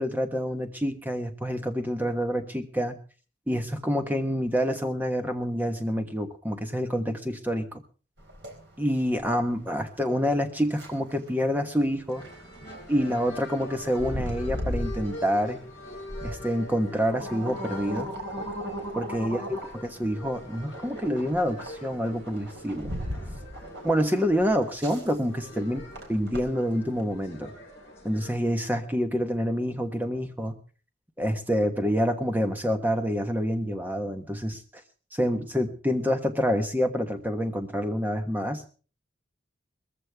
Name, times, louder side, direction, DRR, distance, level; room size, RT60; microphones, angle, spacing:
voice 1, 0.0-2.9 3.5-7.8 8.8-12.2 12.9-15.6 16.2-18.1 18.9-19.5 19.7-22.9 23.8-25.8 26.1-27.5 28.0-30.6 31.2-34.6 35.1-38.6, equal, 10° right, 6 dB, 1.3 m, -27 dB
sound 1, 8.2-27.0, equal, 60° right, 4.1 m, -38 dB
sound 2, 12.1-28.3, left 1 dB, 15° left, 6.9 m, -44 dB
20.5 x 15.0 x 3.5 m, 0.38 s
head